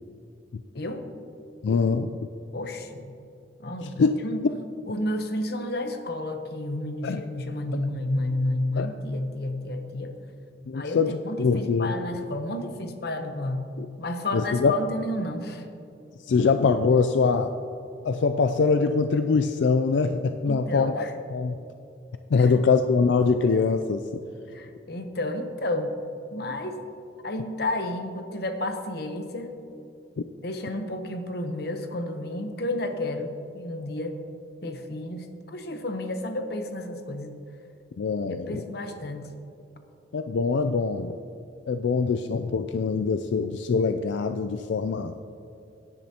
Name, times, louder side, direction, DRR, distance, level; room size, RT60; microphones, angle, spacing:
voice 1, 0.7-1.1 2.5-3.1 3.6-4.4 4.8-10.1 10.7-13.7 14.0-15.7 20.4-21.1 22.4-22.5 24.5-25.9 26.3-26.8 27.2-29.6 30.4-34.2 34.6-37.3 38.3-39.3, left 1 dB, 55° left, 6 dB, 0.9 m, -31 dB
voice 2, 1.6-2.2 4.0-4.1 7.0-7.2 8.8-8.9 10.7-11.9 13.8-13.9 14.3-14.7 16.3-17.5 18.0-21.0 21.3-21.5 22.3-24.0 38.0-38.6 40.1-41.2 41.7-45.2, left 4 dB, 75° left, 9 dB, 0.3 m, -23 dB
16.5 x 10.5 x 2.9 m, 2.7 s
head